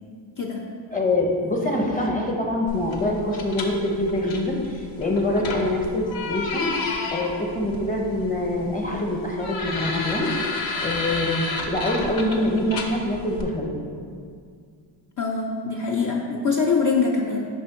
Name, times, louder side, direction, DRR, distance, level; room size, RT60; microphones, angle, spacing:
voice 1, 0.9-6.7 7.1-10.3 10.8-13.7, left 1 dB, 20° left, 0 dB, 0.8 m, -25 dB
sound 1, 2.7-13.4, left 3 dB, 80° left, 0.8 m, -32 dB
voice 2, 15.2-17.5, left 4 dB, 40° left, -1 dB, 0.5 m, -23 dB
5.2 x 3.3 x 5.6 m, 2.2 s
wide cardioid pair, 100°, 47 cm